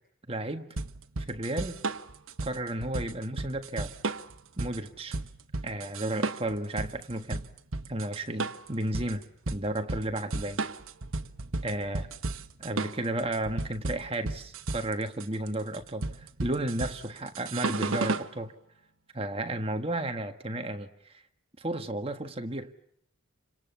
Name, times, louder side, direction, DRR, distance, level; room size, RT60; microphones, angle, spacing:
voice 1, 0.3-0.7 1.3-1.8 2.4-3.9 4.6-5.1 5.6-7.4 7.9-10.6 11.6-12.1 12.6-18.5 19.1-21.2 21.6-22.7, right 1 dB, 25° right, 1.6 m, -33 dB
sound 1, 0.8-18.3, right 3 dB, 80° right, 1.2 m, -34 dB
30.0 x 26.0 x 7.0 m
head